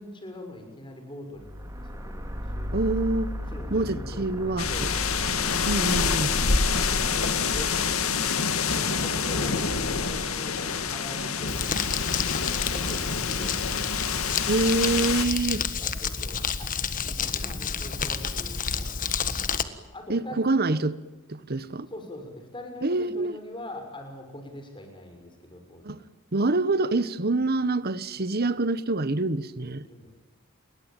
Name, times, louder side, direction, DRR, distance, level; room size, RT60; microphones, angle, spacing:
voice 1, 0.0-2.9 3.5-5.4 5.9-6.3 6.7-8.2 8.7-11.7 12.4-13.7 15.8-19.2 19.5-20.8 21.9-26.0 29.8-30.1, left 1 dB, 25° left, 6.2 m, -42 dB
sound 1, 1.4-9.7, equal, 15° right, 3.6 m, -37 dB
voice 2, 2.7-3.4 3.7-4.9 5.7-6.3 14.5-15.7 20.1-21.0 21.3-21.9 22.8-23.4 25.8-26.0 26.3-29.9, right 2 dB, 45° right, 1.1 m, -26 dB
sound 2, 4.6-15.3, left 5 dB, 75° left, 2.1 m, -27 dB
Crumpling crinkling, 11.5-19.6, left 6 dB, 40° left, 1.6 m, -30 dB
30.0 x 22.0 x 9.1 m
head